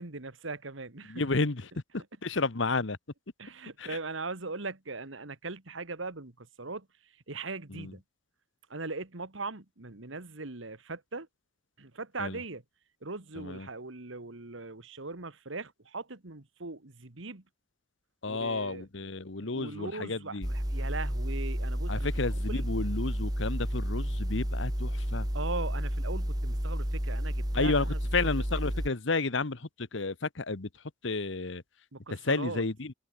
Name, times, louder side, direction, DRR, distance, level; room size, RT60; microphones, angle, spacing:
voice 1, 0.0-1.3 3.4-6.9 7.3-8.0 8.7-11.3 11.8-12.6 13.0-17.4 18.3-18.9 19.4-22.1 22.4-22.7 25.3-28.0 31.9-32.6, right 3 dB, 75° right, 1.9 m, -40 dB
voice 2, 1.1-3.0 3.8-4.0 7.7-7.9 12.2-12.4 13.4-13.7 18.2-20.5 21.9-25.3 27.5-31.6 32.1-32.9, left 3 dB, 70° left, 1.2 m, -32 dB
sound 1, 20.4-28.9, equal, 20° right, 2.6 m, -31 dB
head